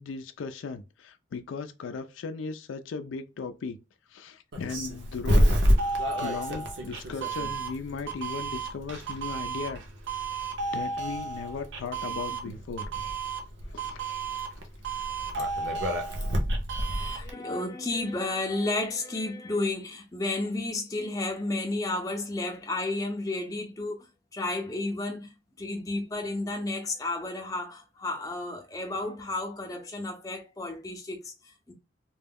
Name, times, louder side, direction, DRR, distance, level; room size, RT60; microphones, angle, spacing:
voice 1, 0.0-3.8 4.1-5.5 5.8-9.8 10.7-12.9 13.7-14.1, left 5 dB, 85° left, 0.4 m, -37 dB
Doorbell, 4.5-17.3, right 1 dB, 70° right, 0.6 m, -29 dB
voice 2, 16.9-31.7, left 2 dB, 20° left, 0.5 m, -32 dB
2.2 x 2.0 x 3.4 m
head